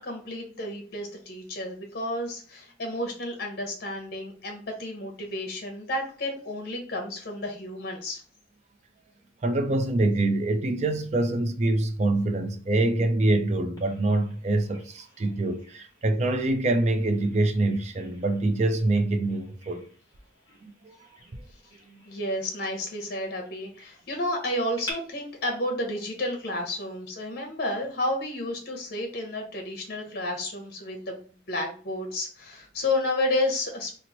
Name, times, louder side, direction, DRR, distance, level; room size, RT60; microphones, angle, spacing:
voice 1, 0.0-8.2 22.0-33.9, left 1 dB, 55° left, 0.8 m, -31 dB
voice 2, 9.4-19.8 20.6-21.0 21.3-21.4, right 2 dB, 35° right, 0.4 m, -25 dB
Bird vocalization bird call bird song, 13.8-24.9, left 1 dB, 20° left, 1.3 m, -49 dB
3.0 x 2.0 x 3.9 m
head